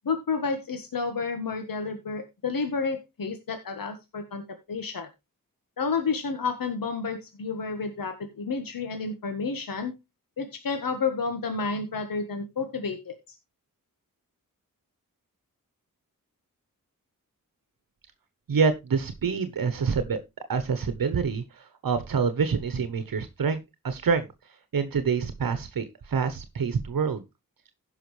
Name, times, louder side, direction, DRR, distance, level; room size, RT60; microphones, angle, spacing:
voice 1, 0.0-5.1 5.8-9.9 10.4-13.2, left 4 dB, 80° left, 7 dB, 1.3 m, -30 dB
voice 2, 18.5-20.2 20.5-24.3 24.7-27.2, right 5 dB, 85° right, 11 dB, 1.0 m, -27 dB
16.0 x 5.6 x 3.1 m, 0.23 s
wide cardioid pair, 60°, 34 cm